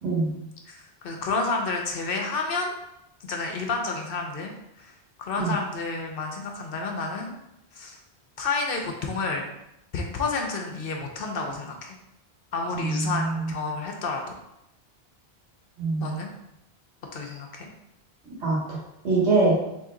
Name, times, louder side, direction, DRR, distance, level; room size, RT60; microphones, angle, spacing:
voice 1, 0.7-2.7 3.2-4.5 4.8-7.3 7.7-8.0 8.4-9.5 9.9-11.9 12.5-14.4 16.0-16.3 17.1-17.7, left 3 dB, 60° left, 2 dB, 0.8 m, -30 dB
voice 2, 12.7-13.5 15.8-16.1 18.4-18.8 19.0-19.5, right 3 dB, 85° right, -5 dB, 1.6 m, -24 dB
4.1 x 2.7 x 3.7 m, 0.86 s
omnidirectional pair, 1.1 m